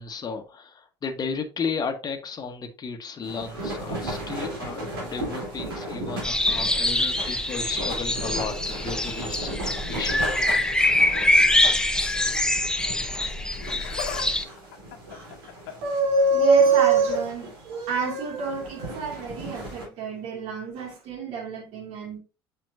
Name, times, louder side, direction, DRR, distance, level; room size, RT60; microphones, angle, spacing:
voice 1, 0.0-10.2, left 5 dB, 35° left, 1.4 m, -34 dB
sound 1, 3.2-19.9, right 1 dB, 75° right, 3.7 m, -37 dB
sound 2, 6.2-14.4, left 1 dB, 5° left, 0.8 m, -24 dB
Laughter, 13.5-14.3 14.6-15.9 16.8-17.2 18.5-18.7 19.6-19.7, left 8 dB, 70° left, 1.3 m, -37 dB
voice 2, 15.8-22.2, right 4 dB, 55° right, 2.6 m, -24 dB
7.6 x 6.0 x 2.7 m
figure-of-eight pair, 65°, 12 cm